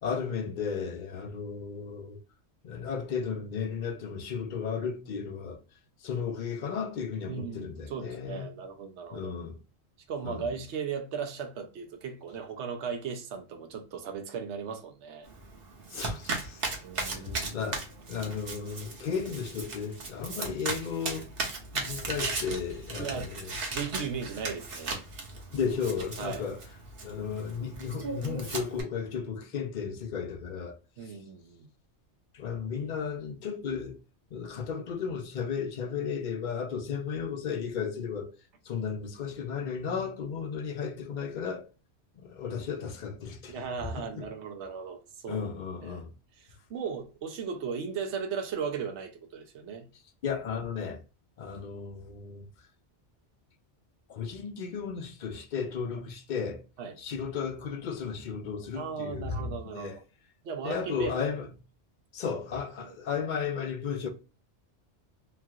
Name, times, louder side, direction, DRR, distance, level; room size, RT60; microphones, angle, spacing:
voice 1, 0.0-2.2 2.6-5.6 6.0-8.5 9.1-9.6 10.2-10.5 15.9-21.3 21.7-23.5 25.5-26.6 27.0-31.2 32.3-34.0 34.3-38.3 38.6-41.7 42.2-44.3 45.3-46.1 50.2-51.0 51.4-52.5 54.1-56.6 57.0-60.0 60.6-61.5 62.1-64.1, left 6 dB, 55° left, 0.6 m, -34 dB
voice 2, 7.3-9.4 10.1-15.3 16.8-17.7 23.0-23.3 23.7-25.0 26.2-26.4 31.0-31.7 43.5-45.4 45.8-46.0 46.4-49.9 56.8-57.0 58.7-60.0 60.4-61.2 62.8-63.0, right 6 dB, 80° right, 1.0 m, -37 dB
Domestic sounds home sounds, 15.3-28.8, right 3 dB, 55° right, 1.0 m, -37 dB
3.0 x 2.4 x 2.7 m
omnidirectional pair, 1.2 m